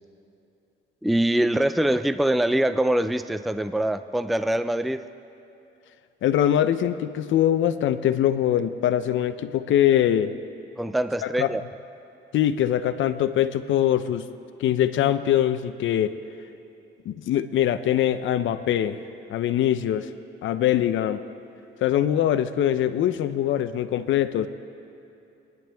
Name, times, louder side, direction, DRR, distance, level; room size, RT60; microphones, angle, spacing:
voice 1, 1.0-5.0 10.8-11.6, right 1 dB, ahead, 11 dB, 0.4 m, -23 dB
voice 2, 6.2-10.4 11.2-11.5 12.3-14.3 14.6-16.1 17.1-19.0 19.3-20.1 20.4-21.2 21.8-24.5, left 11 dB, 75° left, 11 dB, 0.7 m, -23 dB
26.0 x 10.5 x 3.5 m, 2.8 s
cardioid pair, 90°, 20 cm